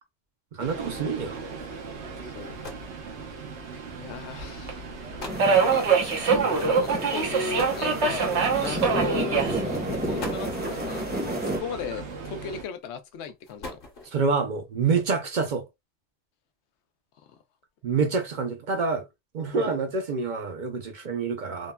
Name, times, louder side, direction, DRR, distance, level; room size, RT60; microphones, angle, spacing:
voice 1, 0.5-1.4 6.3-6.6 14.1-15.7 17.8-19.0 19.3-21.7, right 4 dB, 55° right, 0.6 m, -27 dB
Subway metro underground, 0.6-12.6, right 5 dB, 85° right, 1.1 m, -28 dB
voice 2, 2.2-2.6 4.0-4.8 5.4-5.9 6.5-11.1 11.4-13.8 19.5-19.7, left 6 dB, 90° left, 0.9 m, -37 dB
sound 1, 2.4-3.0 4.0-4.2 4.9-5.0 5.2-5.6 7.6-8.4 9.4-9.5 10.0-10.7 11.9-12.4 13.3-14.3, left 2 dB, 55° left, 1.1 m, -41 dB
sound 2, 5.3-11.6, right 1 dB, 10° right, 0.7 m, -31 dB
3.6 x 2.1 x 2.2 m
omnidirectional pair, 1.1 m